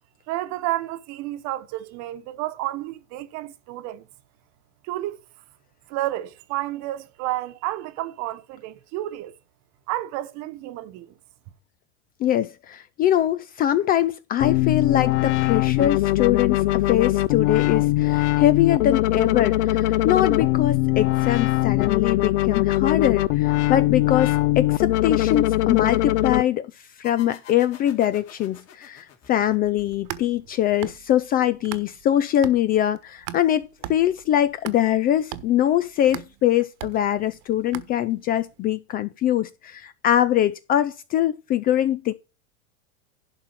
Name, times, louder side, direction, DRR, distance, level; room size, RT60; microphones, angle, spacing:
voice 1, 0.3-4.0 4.8-5.2 5.9-9.3 9.9-11.1, right 15 dB, 45° right, 1.1 m, -31 dB
voice 2, 12.2-26.7 27.0-42.1, left 11 dB, 25° left, 0.4 m, -23 dB
sound 1, 14.4-26.4, left 17 dB, 60° left, 0.8 m, -21 dB
sound 2, 27.0-30.3, left 9 dB, 40° left, 3.3 m, -48 dB
sound 3, 29.8-32.1 32.4-38.4, right 14 dB, 60° right, 1.3 m, -39 dB
11.5 x 4.3 x 6.1 m
supercardioid pair, 130°, 39 cm